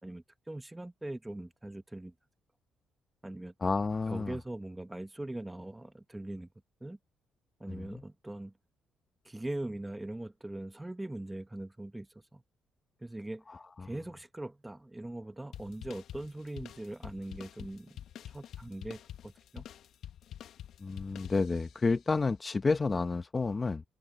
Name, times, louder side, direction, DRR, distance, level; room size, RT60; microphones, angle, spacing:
voice 1, 0.0-2.1 3.2-3.5 4.1-6.5 6.8-7.0 7.6-8.5 9.2-12.4 13.0-13.4 13.8-19.7, right 1 dB, 10° right, 1.4 m, -41 dB
voice 2, 3.6-4.4 7.7-8.0 13.5-13.9 20.8-23.8, left 4 dB, 30° left, 0.9 m, -30 dB
sound 1, 15.5-21.9, left 11 dB, 75° left, 1.4 m, -47 dB
cardioid pair, 90°, 0 cm